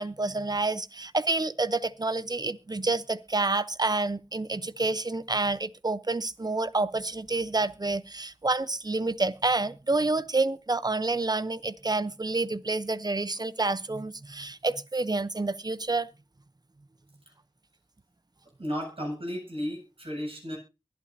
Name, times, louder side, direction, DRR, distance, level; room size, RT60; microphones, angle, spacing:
voice 1, 0.0-16.1, right 3 dB, 40° right, 0.7 m, -28 dB
voice 2, 18.6-20.6, equal, 70° right, 7.4 m, -34 dB
23.0 x 8.6 x 2.7 m
wide cardioid pair, 50°, 10 cm